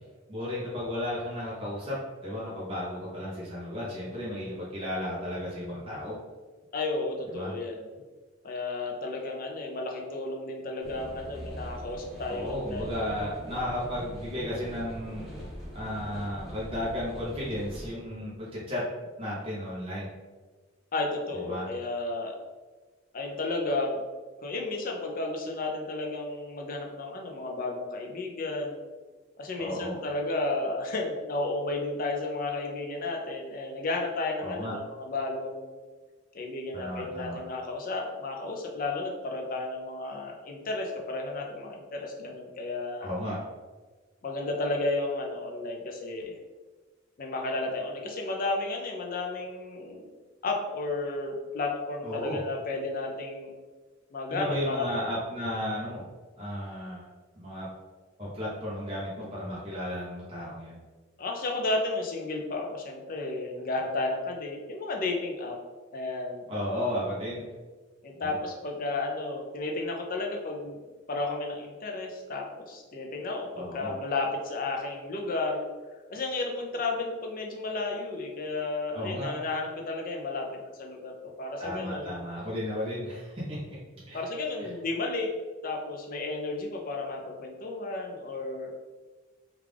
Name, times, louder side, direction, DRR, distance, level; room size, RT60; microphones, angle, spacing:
voice 1, 0.3-6.2 7.3-7.5 12.3-15.3 15.7-18.9 19.2-20.1 21.3-21.7 29.6-30.0 34.4-34.7 36.7-37.4 43.0-43.4 52.0-52.4 54.3-56.1 56.4-57.1 57.4-57.7 58.2-60.8 66.5-67.4 68.2-68.4 73.5-73.9 78.9-79.3 81.6-83.8 84.1-84.2 84.6-84.7, left 1 dB, 30° right, -7 dB, 0.8 m, -34 dB
voice 2, 6.7-7.9 8.4-12.9 20.9-22.4 23.1-24.0 24.4-28.9 29.4-35.7 36.3-43.2 44.2-46.4 47.2-50.1 50.4-53.5 54.1-54.9 61.2-65.6 65.9-66.4 68.0-75.6 76.1-81.1 81.4-82.3 84.1-85.3 85.6-88.7, left 2 dB, 45° left, 1 dB, 0.5 m, -33 dB
sound 1, 10.8-17.9, equal, ahead, 0.9 m, -42 dB
3.5 x 2.4 x 3.3 m, 1.3 s
head